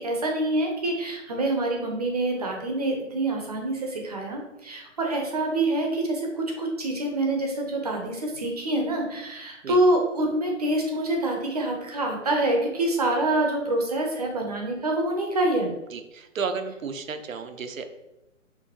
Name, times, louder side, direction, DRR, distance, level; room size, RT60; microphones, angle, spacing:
voice 1, 0.0-15.7, right 1 dB, 30° right, 1 dB, 0.7 m, -26 dB
voice 2, 15.9-17.9, right 5 dB, 90° right, 7 dB, 0.7 m, -33 dB
6.0 x 2.8 x 2.9 m, 0.97 s
hypercardioid pair, 165°, 39 cm